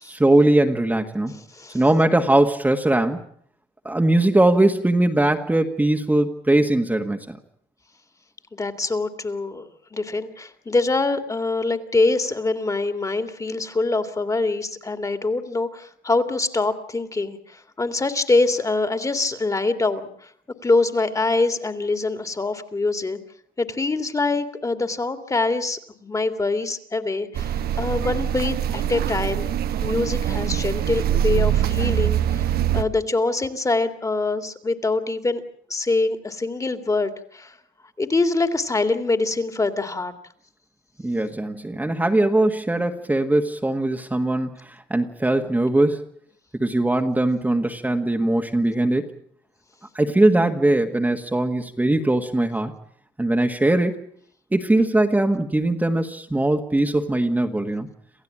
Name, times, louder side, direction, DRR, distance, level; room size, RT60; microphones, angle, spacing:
voice 1, 0.0-1.4 1.7-3.2 3.8-7.4 41.0-46.0 46.5-49.1 49.9-52.7 53.2-54.0 54.5-57.9, right 1 dB, 10° right, 3 dB, 1.7 m, -20 dB
voice 2, 8.5-20.3 20.6-23.2 23.6-29.5 29.8-32.4 32.7-35.4 35.7-37.6 38.0-40.1, left 3 dB, 20° left, 9 dB, 2.4 m, -24 dB
sound 1, 27.3-32.8, right 10 dB, 65° right, 1.3 m, -23 dB
28.5 x 15.0 x 8.8 m, 0.63 s
cardioid pair, 110°, 17 cm